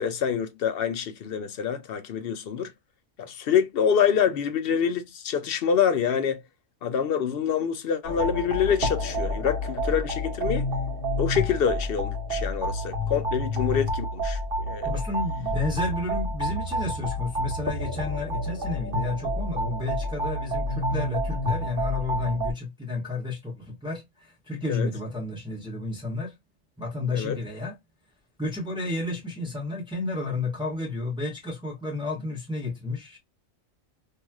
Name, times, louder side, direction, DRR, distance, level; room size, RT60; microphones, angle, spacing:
voice 1, 0.0-2.7 3.2-6.4 6.8-10.7 11.2-14.4 14.7-14.9 24.7-24.9 27.1-27.4, left 7 dB, 60° left, 0.7 m, -26 dB
sound 1, 8.0-22.5, equal, 50° right, 0.9 m, -29 dB
voice 2, 14.8-26.3 26.8-27.7 28.4-33.2, left 3 dB, 5° right, 1.1 m, -31 dB
3.1 x 2.7 x 2.3 m
omnidirectional pair, 1.3 m